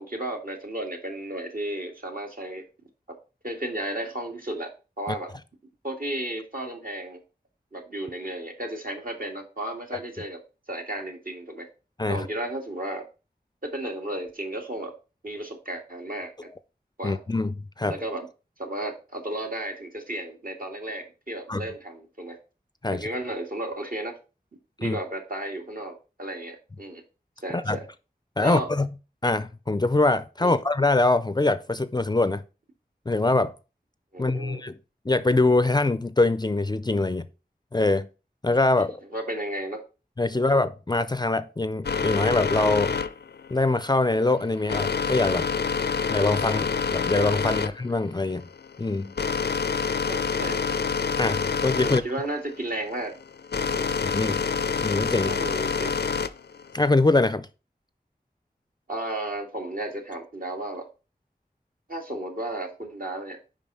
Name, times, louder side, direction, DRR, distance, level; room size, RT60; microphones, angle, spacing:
voice 1, 0.0-2.7 3.4-5.3 5.8-7.2 7.7-10.4 10.7-11.7 12.1-13.0 13.6-14.9 15.2-16.5 17.0-17.2 17.9-18.3 18.6-22.4 22.9-24.2 24.8-27.0 27.4-27.8 28.4-28.7 30.4-30.6 34.1-34.6 39.1-39.8 40.3-40.5 50.1-50.8 51.8-53.1 53.7-53.9 55.2-55.9 58.9-60.9 61.9-63.4, right 1 dB, 60° right, 1.9 m, -33 dB
voice 2, 17.0-18.0 21.5-21.6 22.8-23.1 24.8-25.0 27.5-27.8 28.4-28.9 29.2-32.4 33.1-33.5 34.2-34.7 35.1-37.3 37.7-38.1 38.4-39.0 40.2-42.9 43.5-45.4 46.1-48.5 48.8-49.1 51.2-52.0 54.0-54.4 54.8-55.4 56.7-57.5, left 2 dB, 25° left, 0.4 m, -23 dB
sound 1, 41.8-56.9, left 5 dB, 85° left, 0.5 m, -27 dB
5.4 x 5.1 x 5.4 m
wide cardioid pair, 60°, 17 cm